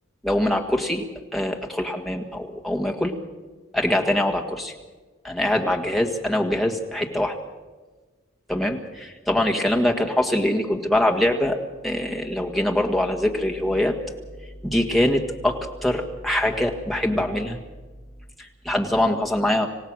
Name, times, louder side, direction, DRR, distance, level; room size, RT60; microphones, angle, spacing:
voice 1, 0.2-1.1 1.3-3.1 3.7-4.8 5.2-7.4 8.5-11.6 11.8-14.0 14.6-17.6 18.4-19.7, left 1 dB, ahead, 1 dB, 1.7 m, -23 dB
27.0 x 16.5 x 6.3 m, 1.3 s
head